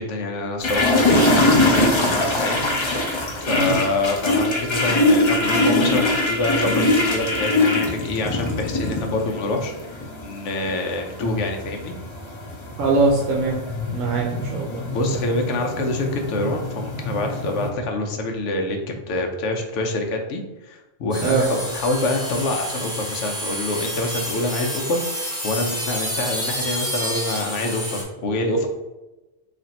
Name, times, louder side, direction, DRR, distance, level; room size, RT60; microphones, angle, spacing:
voice 1, 0.0-2.6 3.4-11.9 14.0-14.1 14.9-18.8 19.1-28.7, left 2 dB, 65° left, 3 dB, 0.9 m, -26 dB
sound 1, 0.6-17.7, left 2 dB, 45° left, 0.3 m, -22 dB
voice 2, 12.8-13.6 13.9-14.8 21.2-21.5, right 3 dB, 75° right, -1 dB, 1.0 m, -21 dB
sound 2, 21.1-28.0, equal, 5° right, 0.7 m, -29 dB
3.4 x 2.5 x 4.0 m, 1.1 s
omnidirectional pair, 1.4 m